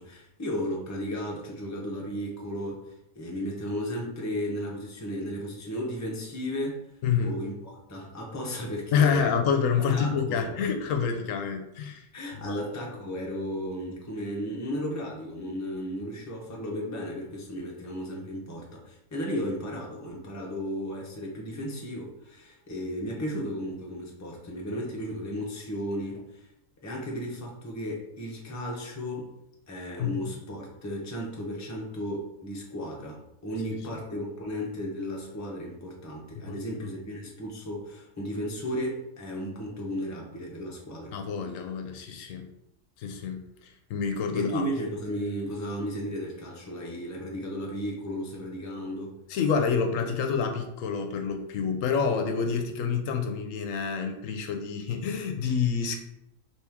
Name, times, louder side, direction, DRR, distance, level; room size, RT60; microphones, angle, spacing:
voice 1, 0.0-2.8 3.1-6.8 7.2-9.3 9.9-10.6 12.1-26.5 26.8-29.3 29.7-41.2 44.3-49.1, equal, 15° left, -2 dB, 0.7 m, -34 dB
voice 2, 7.0-7.4 8.9-12.0 12.5-12.6 30.0-30.3 36.3-36.6 41.1-42.4 43.0-44.6 49.3-56.0, left 6 dB, 75° left, 5 dB, 1.0 m, -28 dB
4.4 x 3.1 x 3.4 m, 0.85 s
omnidirectional pair, 1.4 m